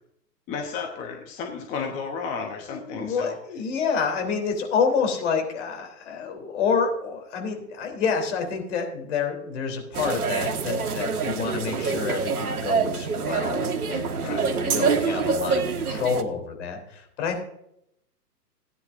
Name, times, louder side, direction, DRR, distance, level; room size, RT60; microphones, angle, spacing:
voice 1, 0.5-3.4 14.2-14.5, left 5 dB, 15° left, 3 dB, 0.9 m, -33 dB
voice 2, 2.7-17.4, left 5 dB, 45° left, 3 dB, 3.5 m, -28 dB
sound 1, 9.9-16.2, right 5 dB, 65° right, 1.5 m, -26 dB
17.5 x 9.6 x 2.6 m, 0.77 s
figure-of-eight pair, 130°, 49 cm